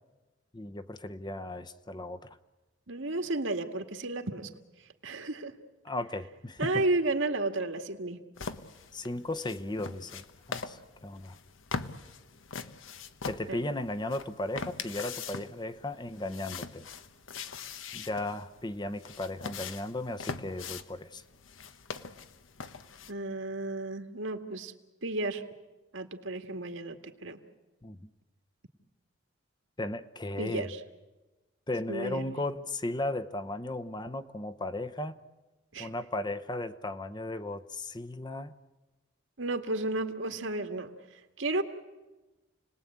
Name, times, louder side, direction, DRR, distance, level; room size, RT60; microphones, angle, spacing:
voice 1, 0.5-2.3 5.8-6.8 8.9-11.4 13.2-16.9 17.9-21.2 27.8-28.1 29.8-30.7 31.7-35.2 35.8-38.5, left 2 dB, 20° left, 9 dB, 0.8 m, -36 dB
voice 2, 2.9-4.5 5.0-5.5 6.6-8.2 13.5-13.6 23.1-24.7 25.0-25.4 25.9-27.0 27.2-27.4 30.4-30.8 31.9-32.3 35.7-35.9 39.4-40.9 41.4-41.6, right 2 dB, 80° right, 5 dB, 2.1 m, -32 dB
sound 1, 8.4-23.1, left 5 dB, 85° left, 1.2 m, -42 dB
30.0 x 20.0 x 8.8 m, 1.1 s
head